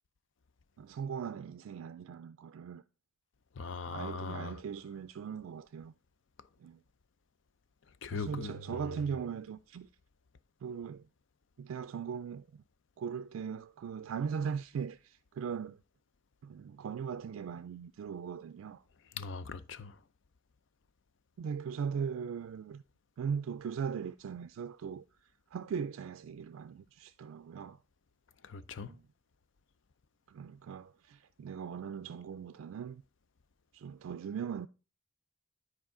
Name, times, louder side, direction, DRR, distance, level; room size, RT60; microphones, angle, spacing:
voice 1, 0.8-2.8 3.8-5.9 6.6-6.8 8.1-9.9 10.6-11.1 11.6-12.6 13.0-15.8 16.4-18.8 21.4-22.8 23.2-25.0 25.5-27.8 28.8-29.1 30.3-33.0 33.7-34.7, right 6 dB, 85° right, 0.3 m, -39 dB
voice 2, 3.6-4.6 8.0-8.5 19.2-19.9 28.4-28.9, left 4 dB, 65° left, 0.5 m, -40 dB
9.6 x 4.7 x 3.7 m
head